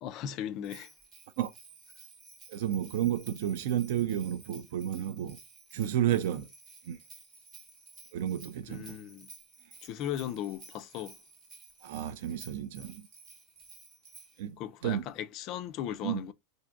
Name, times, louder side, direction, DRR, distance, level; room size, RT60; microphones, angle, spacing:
voice 1, 0.0-0.9 8.7-9.3 9.8-11.2 14.6-16.3, left 10 dB, 30° left, 0.3 m, -37 dB
Bell, 0.6-14.5, right 4 dB, 25° right, 0.8 m, -54 dB
voice 2, 2.5-5.4 5.7-6.5 6.9-7.0 8.1-9.0 11.8-13.1 14.4-14.6 14.8-15.0 16.0-16.2, right 11 dB, 55° right, 0.4 m, -31 dB
5.7 x 2.5 x 2.4 m
supercardioid pair, 175°, 0 cm